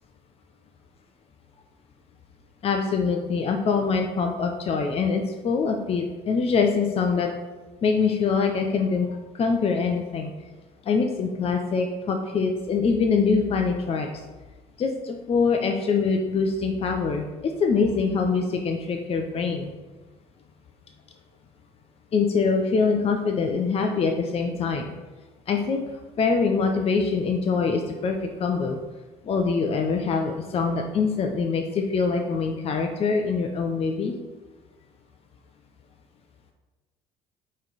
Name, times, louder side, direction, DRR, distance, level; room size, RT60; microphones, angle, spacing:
voice 1, 2.6-7.3 7.8-9.1 9.3-10.3 10.9-14.1 14.8-17.2 17.6-19.7 22.1-24.9 25.5-25.8 26.2-28.8 29.2-34.1, left 5 dB, 45° left, 3 dB, 0.7 m, -24 dB
7.9 x 3.2 x 4.0 m, 1.2 s
supercardioid pair, 75°, 14 cm